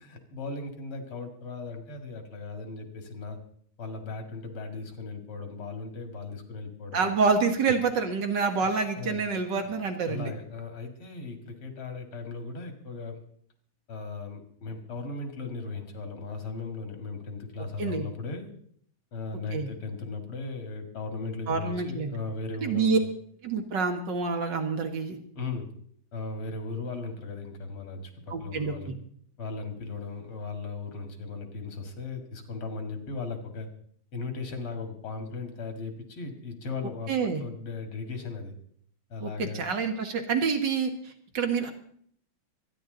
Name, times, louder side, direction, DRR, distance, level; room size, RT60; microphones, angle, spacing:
voice 1, 0.0-3.4 3.8-7.1 7.6-7.7 9.0-9.2 10.1-13.2 13.9-18.5 19.1-23.0 25.3-25.7 26.1-28.9 29.4-33.7 34.1-38.5 39.1-39.6, left 3 dB, 90° left, 5 dB, 3.0 m, -37 dB
voice 2, 6.9-10.3 17.8-18.1 19.5-19.7 21.5-22.1 22.6-23.0 23.4-25.2 28.3-28.7 37.1-37.4 39.2-40.9 41.3-41.7, right 5 dB, 60° right, 5 dB, 2.1 m, -27 dB
24.5 x 10.0 x 3.9 m, 0.62 s
omnidirectional pair, 2.3 m